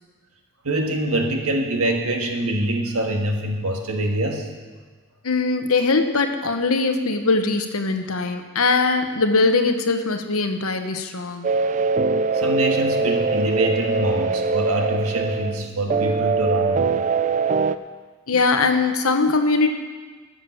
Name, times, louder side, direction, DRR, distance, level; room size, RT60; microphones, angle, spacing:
voice 1, 0.6-4.5 12.3-17.1, right 1 dB, 90° right, 3 dB, 1.6 m, -24 dB
voice 2, 5.2-11.5 18.3-19.7, left 3 dB, 80° left, 7 dB, 1.0 m, -21 dB
sound 1, 11.4-17.8, right 4 dB, 35° right, 0.4 m, -22 dB
12.5 x 7.3 x 7.1 m, 1.4 s
head